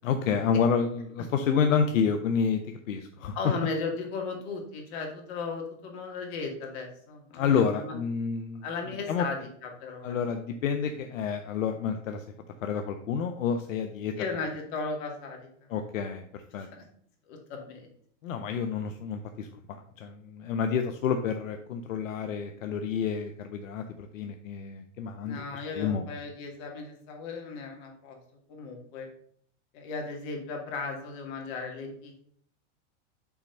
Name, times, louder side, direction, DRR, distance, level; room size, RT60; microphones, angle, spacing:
voice 1, 0.0-3.5 7.3-8.6 9.1-9.3 10.0-12.3 12.6-14.2 15.7-16.7 18.2-25.4 25.7-26.0, left 6 dB, 85° left, 7 dB, 0.7 m, -29 dB
voice 2, 3.3-7.9 8.6-10.2 14.1-15.5 16.6-16.7 17.3-17.9 25.2-28.2 28.5-29.1 29.7-32.2, left 4 dB, 55° left, 2 dB, 2.2 m, -36 dB
5.9 x 4.2 x 5.3 m, 0.63 s
hypercardioid pair, 115°, 38 cm